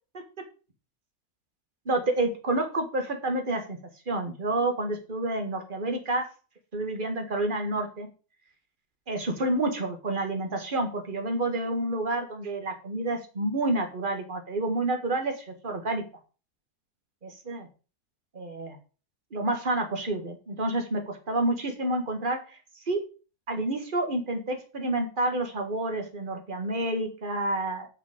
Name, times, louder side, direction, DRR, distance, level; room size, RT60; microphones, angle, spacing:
voice 1, 1.8-3.8 4.1-6.3 6.7-8.1 9.1-16.0 17.2-17.7 18.3-18.8 19.3-22.6 22.9-23.0 23.5-27.9, right 2 dB, 35° right, 5 dB, 1.5 m, -29 dB
8.2 x 5.1 x 4.9 m, 0.35 s
omnidirectional pair, 1.7 m